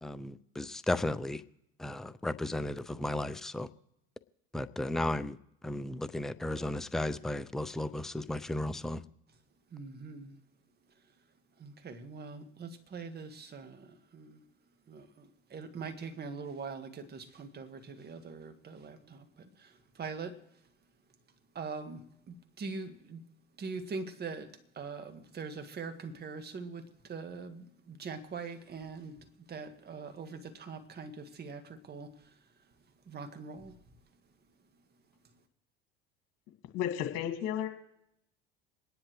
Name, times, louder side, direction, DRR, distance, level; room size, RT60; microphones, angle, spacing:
voice 1, 0.0-1.4 1.8-3.7 4.5-5.4 5.6-9.0, left 1 dB, ahead, 0.5 m, -34 dB
voice 2, 9.7-10.4 11.6-14.4 14.9-20.4 21.5-23.2 23.6-24.5 24.7-29.2 29.5-32.3 33.1-33.8, right 4 dB, 35° right, 1.8 m, -43 dB
voice 3, 36.7-37.7, left 10 dB, 60° left, 2.0 m, -32 dB
27.5 x 10.0 x 3.2 m
hypercardioid pair, 85°, 29 cm